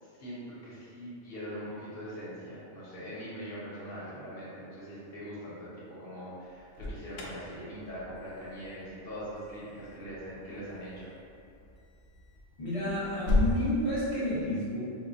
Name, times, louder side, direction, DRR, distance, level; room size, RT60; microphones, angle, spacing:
voice 1, 0.0-11.1, equal, 55° left, -9 dB, 1.1 m, -42 dB
Alarm, 6.5-13.6, left 1 dB, 70° left, 0.8 m, -36 dB
voice 2, 12.6-14.8, left 1 dB, 30° left, -11 dB, 1.0 m, -30 dB
3.9 x 2.1 x 2.7 m, 2.6 s
omnidirectional pair, 1.3 m